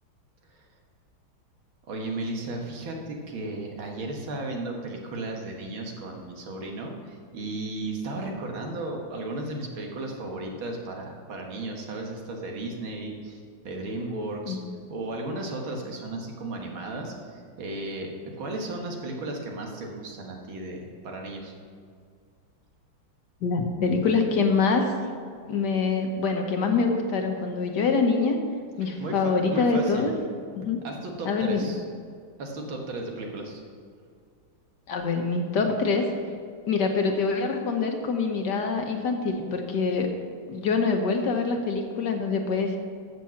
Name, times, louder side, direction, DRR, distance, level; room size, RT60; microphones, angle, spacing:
voice 1, 1.9-14.6 14.9-18.1 18.4-21.5 29.0-30.1 30.8-31.8 32.4-33.6, right 2 dB, 80° right, 1 dB, 2.3 m, -35 dB
voice 2, 23.4-24.8 25.5-28.4 28.8-30.1 30.6-30.8 31.2-31.7 34.9-36.1 36.7-40.1 40.5-42.8, left 4 dB, 60° left, 4 dB, 1.5 m, -25 dB
14.0 x 6.8 x 5.8 m, 2.1 s
omnidirectional pair, 2.2 m